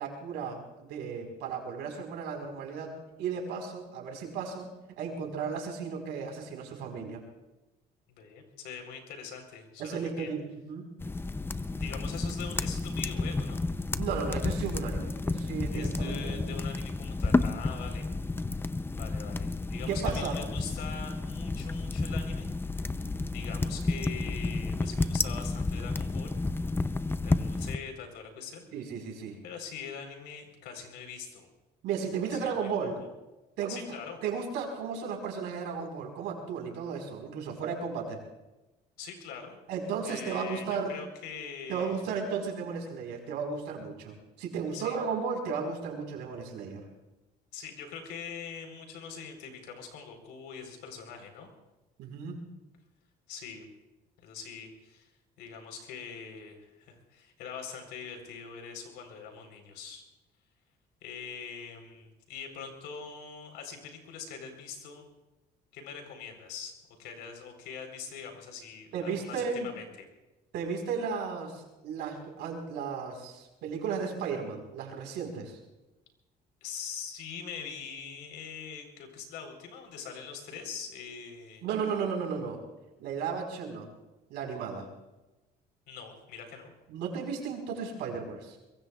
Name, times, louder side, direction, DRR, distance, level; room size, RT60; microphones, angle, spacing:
voice 1, 0.0-4.7 5.0-7.2 9.8-10.9 14.0-16.6 19.9-20.4 28.7-29.4 31.8-33.0 33.6-38.2 39.7-40.9 41.7-46.8 52.0-52.4 68.9-69.7 70.5-75.6 81.6-82.6 83.0-83.9 84.3-84.9 86.9-88.6, right 6 dB, 85° right, 2 dB, 4.6 m, -34 dB
voice 2, 8.1-10.3 11.5-13.7 15.7-18.1 19.0-23.0 23.3-26.4 27.2-28.8 29.4-31.5 32.3-32.7 33.0-33.1 33.7-34.2 39.0-39.6 40.0-42.1 44.7-45.0 47.5-51.5 53.3-53.7 54.2-55.1 55.4-60.0 61.0-65.1 65.7-66.7 67.0-70.1 76.6-81.6 85.9-86.7, left 6 dB, 85° left, 4 dB, 4.2 m, -43 dB
sound 1, 11.0-27.8, left 3 dB, 15° left, 0.6 m, -31 dB
23.5 x 22.5 x 2.4 m, 1.0 s
cardioid pair, 110°, 17 cm